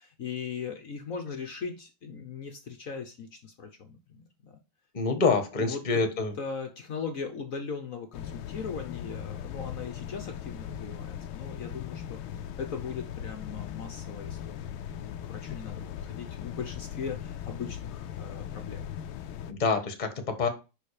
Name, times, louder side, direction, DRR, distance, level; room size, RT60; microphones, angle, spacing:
voice 1, 0.0-4.6 5.6-6.0 6.4-12.2 12.6-18.9, left 6 dB, 50° left, 4 dB, 1.2 m, -39 dB
voice 2, 4.9-6.3 19.4-20.5, left 4 dB, 25° left, 7 dB, 1.3 m, -26 dB
sound 1, 8.1-19.5, left 9 dB, 80° left, 1.5 m, -39 dB
5.6 x 5.2 x 6.5 m, 0.29 s
omnidirectional pair, 2.3 m